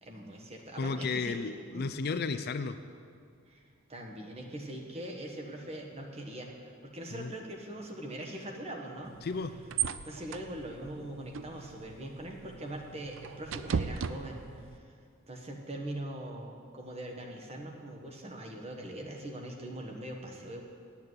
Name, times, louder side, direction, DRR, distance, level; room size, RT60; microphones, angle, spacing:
voice 1, 0.0-1.9 3.5-3.6 3.9-9.1 10.0-14.8 15.3-20.6, right 1 dB, 30° right, 1 dB, 1.3 m, -42 dB
voice 2, 0.8-2.8 7.1-7.3 9.2-9.5, left 4 dB, 45° left, 10 dB, 0.4 m, -33 dB
sound 1, 9.0-14.8, right 7 dB, 60° right, 0.4 m, -38 dB
8.8 x 8.2 x 9.2 m, 2.2 s
head